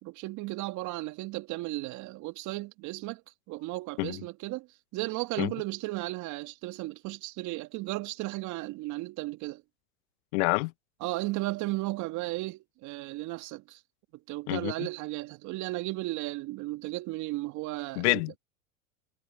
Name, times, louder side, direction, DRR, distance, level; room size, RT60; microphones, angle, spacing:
voice 1, 0.0-4.7 4.9-9.6 11.0-13.8 14.1-18.2, right 20 dB, 50° right, 2.6 m, -35 dB
voice 2, 10.3-10.7 14.5-14.9 18.0-18.4, left 25 dB, 55° left, 0.9 m, -27 dB
hypercardioid pair, 95°, 39 cm